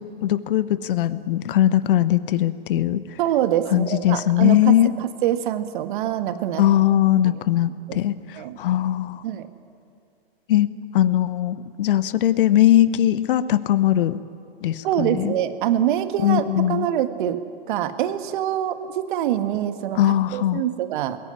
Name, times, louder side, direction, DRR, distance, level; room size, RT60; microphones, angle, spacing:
voice 1, 0.0-3.0 3.7-4.9 6.6-9.2 10.5-10.7 10.9-14.2 14.6-15.3 16.2-16.9 19.9-20.6, left 12 dB, 60° left, 15 dB, 1.0 m, -20 dB
voice 2, 3.2-6.6 7.9-8.0 8.4-8.6 9.2-9.5 14.8-17.4 17.7-21.2, right 11 dB, 55° right, 10 dB, 1.6 m, -25 dB
22.0 x 17.0 x 9.7 m, 2.4 s
hypercardioid pair, 115°, 31 cm